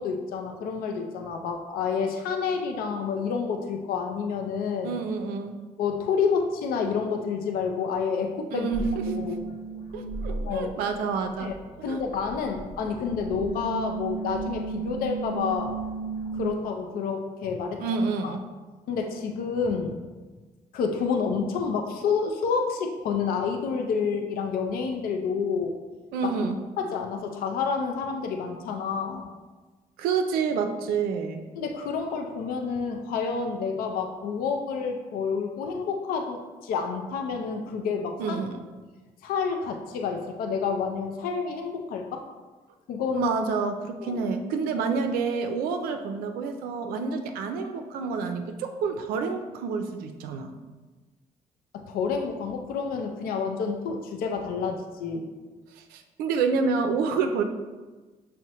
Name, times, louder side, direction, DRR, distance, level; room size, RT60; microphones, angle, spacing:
voice 1, 0.0-5.0 5.8-8.7 9.2-9.5 10.3-10.8 11.4-11.5 11.8-15.7 16.3-17.8 18.2-18.4 18.9-20.0 20.7-25.7 26.2-26.5 26.8-29.3 31.6-38.4 39.2-42.2 42.9-43.3 44.0-44.2 51.7-55.3, left 5 dB, 80° left, 4 dB, 0.4 m, -29 dB
voice 2, 4.8-5.5 8.5-8.9 9.9-11.5 11.9-12.0 17.8-18.4 26.1-26.6 30.0-31.4 38.2-38.6 43.1-50.5 55.8-57.4, right 5 dB, 85° right, 6 dB, 0.4 m, -28 dB
sound 1, 8.7-11.1 11.3-16.5, right 4 dB, 65° left, 0.9 m, -34 dB
6.1 x 2.1 x 2.8 m, 1.3 s
supercardioid pair, 65°, 15 cm